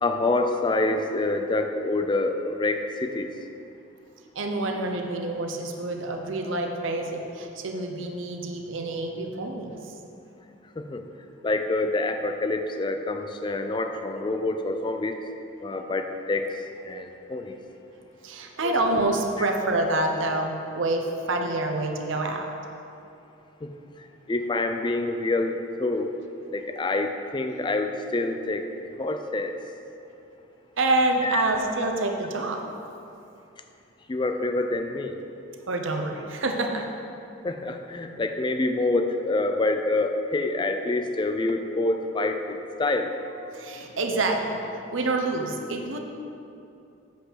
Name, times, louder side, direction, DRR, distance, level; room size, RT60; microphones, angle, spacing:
voice 1, 0.0-3.3 10.8-11.0 11.4-15.3 15.6-17.6 18.6-18.8 23.6-26.1 26.5-28.7 29.0-29.5 31.2-31.4 34.1-35.2 37.4-43.2, left 2 dB, 25° left, 6 dB, 0.4 m, -27 dB
voice 2, 4.4-9.7 18.2-22.5 30.8-32.6 35.7-36.9 43.5-46.0, right 2 dB, 75° right, 3 dB, 0.8 m, -27 dB
8.0 x 5.5 x 6.3 m, 2.7 s
head